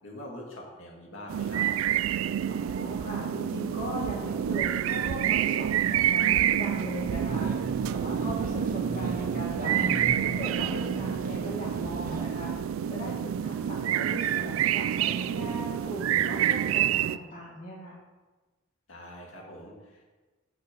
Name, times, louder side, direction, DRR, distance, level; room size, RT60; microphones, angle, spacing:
voice 1, 0.0-1.7 18.9-20.1, left 1 dB, 75° left, -1 dB, 2.0 m, -44 dB
sound 1, 1.3-17.2, right 10 dB, 85° right, 0.3 m, -28 dB
voice 2, 2.5-18.0, equal, 40° left, -6 dB, 1.7 m, -39 dB
sound 2, 7.3-12.3, right 1 dB, 45° right, 0.8 m, -37 dB
6.0 x 5.5 x 6.6 m, 1.2 s
head